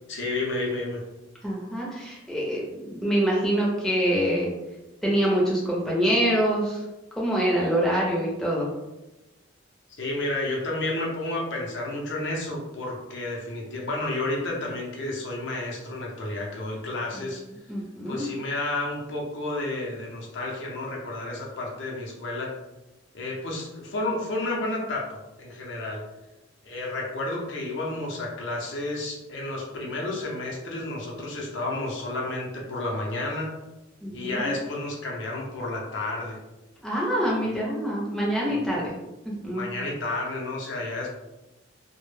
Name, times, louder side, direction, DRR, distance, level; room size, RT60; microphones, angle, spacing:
voice 1, 0.1-1.0 10.0-17.4 18.1-22.6 23.1-26.0 26.6-33.5 34.1-36.4 38.5-38.8 39.5-41.1, left 2 dB, 60° left, -2 dB, 0.5 m, -31 dB
voice 2, 1.4-4.5 5.0-6.8 7.1-8.7 17.1-17.3 17.7-18.3 34.0-34.5 36.8-38.9 39.2-39.6, equal, ahead, -5 dB, 0.5 m, -25 dB
2.1 x 2.0 x 3.1 m, 1.0 s
head